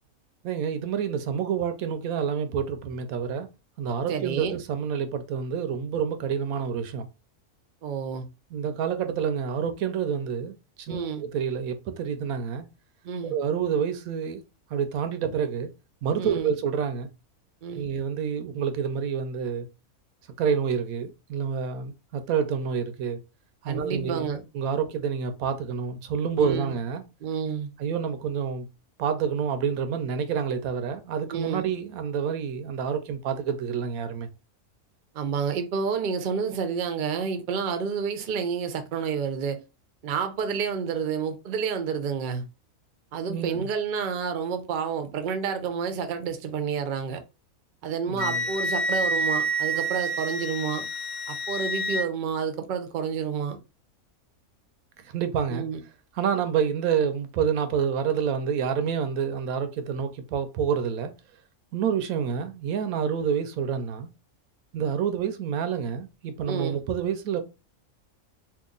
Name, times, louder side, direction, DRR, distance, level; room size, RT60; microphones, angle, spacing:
voice 1, 0.4-3.5 3.8-7.1 8.5-12.7 13.3-14.4 14.7-15.7 16.0-17.1 17.7-19.7 20.4-23.2 23.6-27.0 27.8-28.7 29.0-34.3 43.3-43.7 48.1-48.4 55.1-55.7 56.2-61.1 61.7-64.1 64.7-67.4, right 7 dB, 85° right, 1.0 m, -28 dB
voice 2, 4.1-4.6 7.8-8.3 10.9-11.2 13.0-13.3 16.2-16.5 17.6-17.9 23.7-24.4 26.4-26.7 27.2-27.7 31.3-31.7 35.1-39.6 40.0-42.4 43.1-47.2 47.8-50.8 51.3-53.6 55.5-55.8 66.5-66.8, right 6 dB, 60° right, 0.5 m, -29 dB
Wind instrument woodwind instrument, 48.2-52.1, right 1 dB, 85° left, 0.4 m, -28 dB
2.9 x 2.4 x 3.7 m
omnidirectional pair, 1.5 m